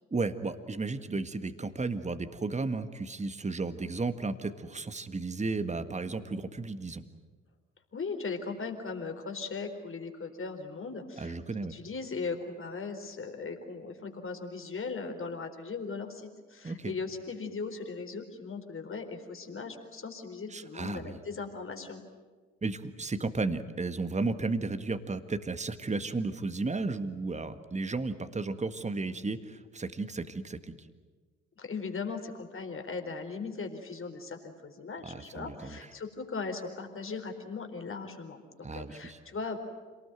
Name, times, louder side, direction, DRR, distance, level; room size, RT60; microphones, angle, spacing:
voice 1, 0.1-7.0 11.2-11.7 16.6-16.9 20.5-21.2 22.6-30.7 35.1-35.8 38.6-39.2, right 3 dB, 20° right, 10 dB, 1.8 m, -34 dB
voice 2, 7.9-11.4 11.7-22.0 31.6-39.6, left 4 dB, 35° left, 5 dB, 4.3 m, -38 dB
27.0 x 19.5 x 9.2 m, 1.5 s
hypercardioid pair, 45°, 35 cm